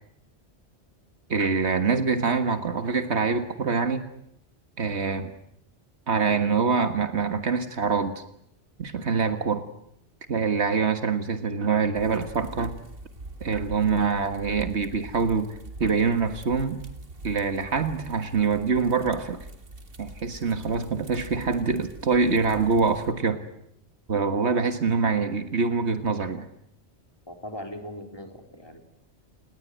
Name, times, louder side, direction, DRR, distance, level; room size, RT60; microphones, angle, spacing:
voice 1, 1.3-4.0 4.8-5.3 6.1-8.2 8.8-9.6 10.3-12.7 13.4-15.5 15.8-16.8 17.2-19.5 20.0-23.4 24.1-26.5, right 5 dB, 75° right, 8 dB, 1.9 m, -25 dB
sound 1, 11.9-23.1, right 2 dB, 55° right, 2.3 m, -43 dB
voice 2, 27.3-28.8, left 1 dB, 20° left, 4 dB, 3.9 m, -39 dB
28.5 x 20.0 x 9.3 m, 0.77 s
omnidirectional pair, 1.1 m